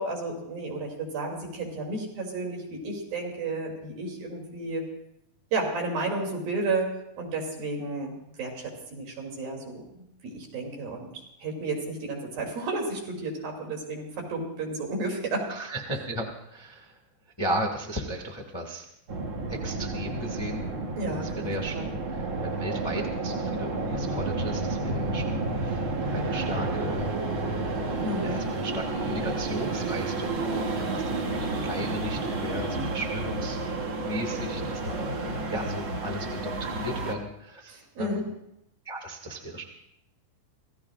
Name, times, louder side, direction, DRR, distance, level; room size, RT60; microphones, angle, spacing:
voice 1, 0.0-4.8 5.5-6.9 7.2-9.8 10.2-15.4 21.0-21.9 28.0-28.4 37.7-38.3, right 2 dB, 80° right, -1 dB, 4.6 m, -32 dB
voice 2, 15.5-17.0 17.4-18.8 19.5-20.6 21.1-21.7 22.1-27.2 27.9-38.2 38.8-39.7, equal, 20° left, 0 dB, 0.6 m, -36 dB
sound 1, 19.1-37.1, right 3 dB, 60° right, 1.3 m, -31 dB
27.5 x 16.5 x 2.5 m, 0.78 s
omnidirectional pair, 4.1 m